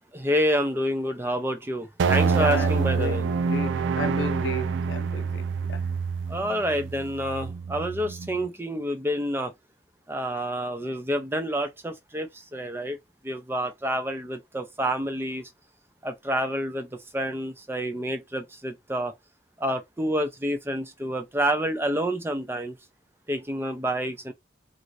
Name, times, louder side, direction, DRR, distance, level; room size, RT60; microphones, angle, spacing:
voice 1, 0.1-3.3 6.3-9.5 10.1-13.0 13.2-15.5 16.0-16.9 17.1-19.1 19.6-22.8 23.3-24.3, equal, 15° right, 0.5 m, -28 dB
sound 1, 2.0-8.5, right 5 dB, 80° right, 0.3 m, -27 dB
voice 2, 2.3-5.8, left 3 dB, 80° left, 0.5 m, -33 dB
2.7 x 2.6 x 3.1 m
head